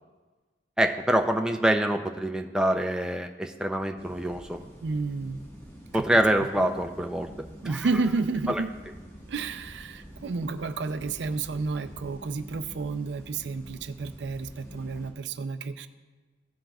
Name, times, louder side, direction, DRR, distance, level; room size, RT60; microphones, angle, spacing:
voice 1, 0.8-4.6 5.9-7.3 7.6-7.8 8.5-8.6, right 1 dB, 5° right, 4 dB, 0.4 m, -25 dB
sound 1, 4.0-15.1, equal, 15° left, 1.4 m, -47 dB
voice 2, 4.8-5.4 5.9-6.1 7.6-8.7 9.3-15.9, right 4 dB, 75° right, 11 dB, 0.4 m, -31 dB
15.0 x 7.5 x 2.3 m, 1.3 s
head